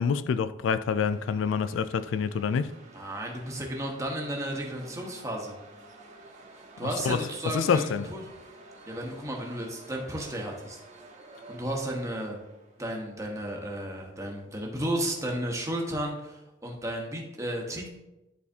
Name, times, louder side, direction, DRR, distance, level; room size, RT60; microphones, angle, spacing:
voice 1, 0.0-2.7 6.8-7.2 7.5-8.1, left 6 dB, 75° left, 0.3 m, -27 dB
sound 1, 0.9-13.2, right 2 dB, 40° right, 1.2 m, -51 dB
voice 2, 2.9-5.5 6.8-8.2 8.9-10.8 11.5-12.4 12.8-17.9, right 1 dB, 15° right, 1.1 m, -33 dB
11.0 x 4.1 x 2.7 m
head